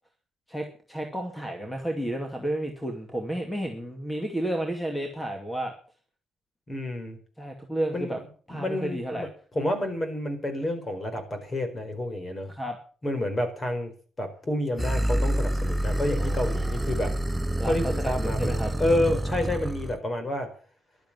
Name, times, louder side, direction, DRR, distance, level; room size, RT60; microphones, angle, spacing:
voice 1, 0.5-5.7 7.4-8.2 8.5-9.3 12.5-12.8 16.2-16.8 17.6-18.7, right 1 dB, 5° left, 4 dB, 2.4 m, -32 dB
voice 2, 6.7-7.2 7.9-8.2 8.5-9.3 9.5-12.5 13.0-13.9 14.2-17.2 17.6-20.5, left 1 dB, 25° left, 8 dB, 4.6 m, -29 dB
sound 1, 14.8-20.0, right 1 dB, 10° right, 0.6 m, -27 dB
14.0 x 12.0 x 7.5 m, 0.43 s
cardioid pair, 130°, 0 cm